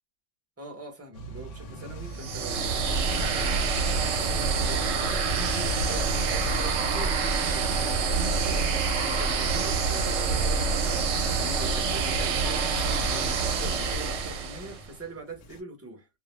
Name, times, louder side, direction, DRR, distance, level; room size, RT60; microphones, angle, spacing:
voice 1, 0.6-16.1, right 2 dB, 20° right, 0.4 m, -42 dB
sound 1, 1.1-15.6, right 1 dB, 65° left, 0.8 m, -43 dB
sound 2, 2.1-14.8, right 4 dB, 60° right, 0.8 m, -26 dB
2.4 x 2.0 x 3.0 m
omnidirectional pair, 1.5 m